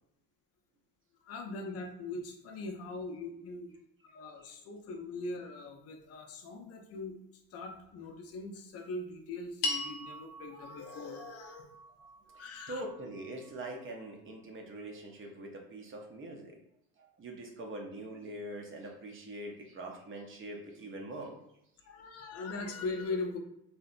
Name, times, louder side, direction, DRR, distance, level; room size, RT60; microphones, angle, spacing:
voice 1, 1.2-3.8 4.1-11.7 12.4-12.8 21.8-23.4, left 3 dB, 35° left, 3 dB, 0.5 m, -41 dB
sound 1, 9.6-14.1, left 2 dB, 70° left, 0.8 m, -41 dB
voice 2, 12.3-16.6 17.0-21.3, right 1 dB, 30° right, 1 dB, 0.6 m, -43 dB
2.7 x 2.1 x 2.4 m, 0.79 s
supercardioid pair, 95°, 42 cm